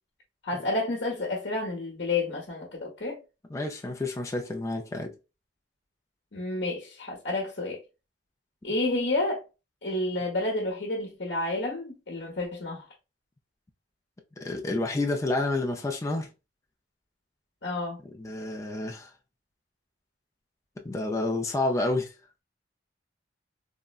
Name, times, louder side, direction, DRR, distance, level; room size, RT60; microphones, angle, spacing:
voice 1, 0.4-3.2 6.3-7.8 8.6-9.4 9.8-12.8 17.6-18.0, left 2 dB, 65° left, 0.9 m, -30 dB
voice 2, 3.5-5.1 14.4-16.3 18.2-19.1 20.8-22.1, left 2 dB, 15° left, 0.4 m, -29 dB
3.6 x 2.1 x 2.3 m
head